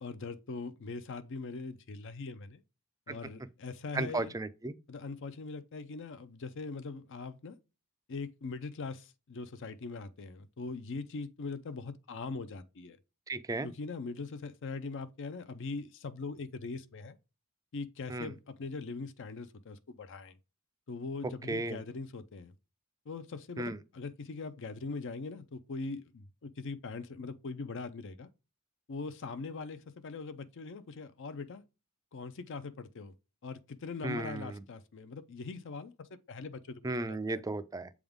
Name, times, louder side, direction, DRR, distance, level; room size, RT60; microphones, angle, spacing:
voice 1, 0.0-2.6 3.1-4.3 4.9-7.6 8.1-13.0 13.6-17.2 17.7-20.4 20.9-22.5 23.1-28.3 28.9-31.6 32.1-33.1 33.4-37.4, left 4 dB, 55° left, 0.5 m, -41 dB
voice 2, 3.9-4.7 13.3-13.7 18.1-18.3 21.5-21.8 23.6-23.8 34.0-34.6 36.8-37.9, right 2 dB, 15° right, 0.4 m, -35 dB
7.8 x 3.6 x 3.6 m
head